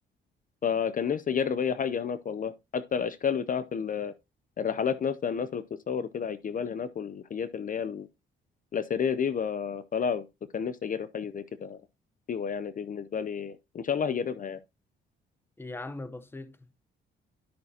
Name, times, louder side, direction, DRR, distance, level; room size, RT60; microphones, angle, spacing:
voice 1, 0.6-4.1 4.6-8.1 8.7-10.3 10.5-11.8 12.3-14.6, left 7 dB, 45° left, 0.6 m, -30 dB
voice 2, 15.6-16.8, left 2 dB, 10° left, 0.8 m, -40 dB
11.0 x 6.2 x 2.8 m
cardioid pair, 90°, 20 cm